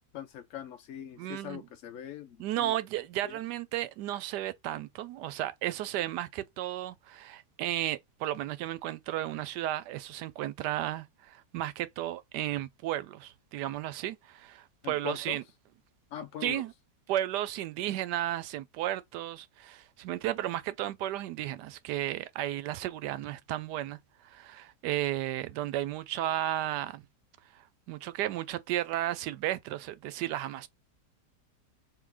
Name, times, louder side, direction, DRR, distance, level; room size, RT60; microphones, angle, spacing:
voice 1, 0.1-2.8 3.2-3.4 14.8-15.4 16.1-16.6, left 10 dB, 70° left, 0.7 m, -42 dB
voice 2, 1.2-1.6 2.4-15.4 16.4-16.7 17.1-24.0 24.2-27.0 27.5-30.7, right 13 dB, 80° right, 1.2 m, -34 dB
3.7 x 2.8 x 4.7 m
omnidirectional pair, 1.8 m